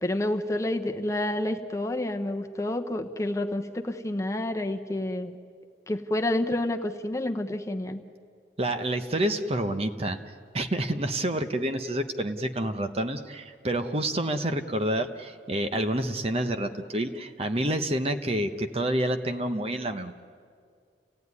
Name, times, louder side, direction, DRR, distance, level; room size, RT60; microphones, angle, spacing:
voice 1, 0.0-5.3 5.9-8.0, left 1 dB, 15° left, 4 dB, 1.0 m, -29 dB
voice 2, 8.6-10.2 10.5-20.1, right 1 dB, 35° right, 8 dB, 1.0 m, -28 dB
29.5 x 17.0 x 9.7 m, 2.1 s
head